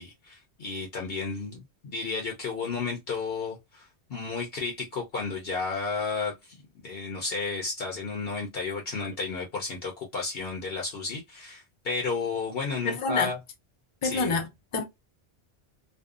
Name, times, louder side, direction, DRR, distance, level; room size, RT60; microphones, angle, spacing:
voice 1, 0.0-13.4 14.0-14.4, left 4 dB, 60° left, 0.9 m, -33 dB
voice 2, 12.8-13.3 14.0-14.8, left 4 dB, 45° left, 0.4 m, -27 dB
2.6 x 2.1 x 2.4 m
omnidirectional pair, 1.1 m